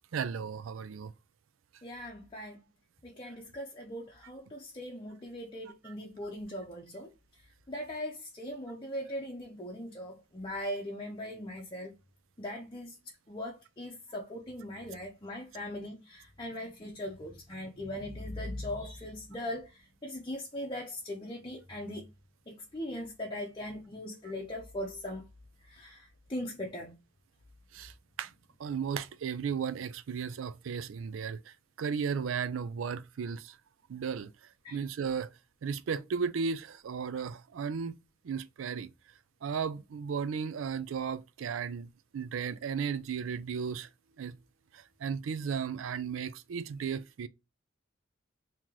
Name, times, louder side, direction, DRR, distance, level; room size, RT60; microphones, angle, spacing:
voice 1, 0.1-1.1 5.8-5.9 27.7-27.9 28.2-28.3 28.6-33.5 33.9-34.3 34.7-35.3 35.6-38.0 38.2-38.9 39.4-43.9 44.2-44.3 44.7-47.3, right 6 dB, 85° right, 0.4 m, -35 dB
voice 2, 1.8-2.6 3.0-7.1 7.7-11.9 12.4-13.0 13.3-22.0 22.5-25.2 25.7-26.9 34.6-34.8, left 1 dB, 25° left, 0.7 m, -40 dB
3.0 x 2.9 x 3.6 m
head